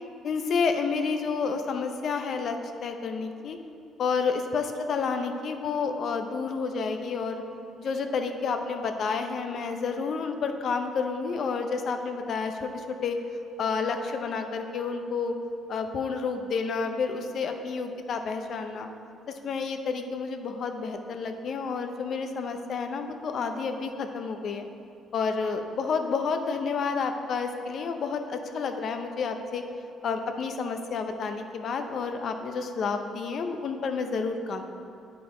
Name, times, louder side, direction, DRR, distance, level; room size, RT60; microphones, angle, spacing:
voice 1, 0.2-3.6 4.0-7.4 7.8-13.2 13.6-15.4 15.7-18.9 19.3-24.6 25.1-29.6 30.0-34.6, left 5 dB, 60° left, 6 dB, 0.6 m, -30 dB
9.0 x 5.0 x 3.8 m, 2.6 s
cardioid pair, 80°, 0 cm